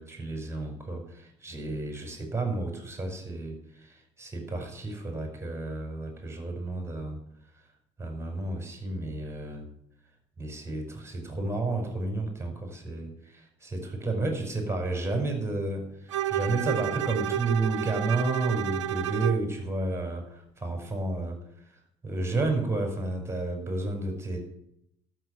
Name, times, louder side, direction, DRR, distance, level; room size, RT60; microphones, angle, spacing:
voice 1, 0.0-7.2 7.5-7.6 8.0-9.7 10.4-24.4, right 2 dB, 15° right, 3 dB, 5.8 m, -31 dB
Bowed string instrument, 16.1-19.5, right 12 dB, 85° right, 0.6 m, -30 dB
12.5 x 7.3 x 9.7 m, 0.77 s
hypercardioid pair, 50°, 15 cm